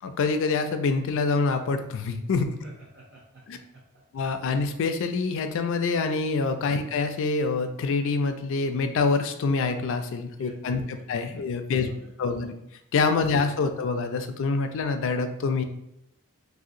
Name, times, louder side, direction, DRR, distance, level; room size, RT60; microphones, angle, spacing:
voice 1, 0.0-2.5 3.5-3.6 4.1-11.9 12.2-12.5 12.9-15.6, left 4 dB, 60° left, 7 dB, 0.3 m, -26 dB
voice 2, 2.6-3.4 6.7-6.8 10.4-11.0 11.3-11.4 11.7-12.5, right 2 dB, 50° right, -7 dB, 0.7 m, -48 dB
3.3 x 2.7 x 2.5 m, 0.79 s
head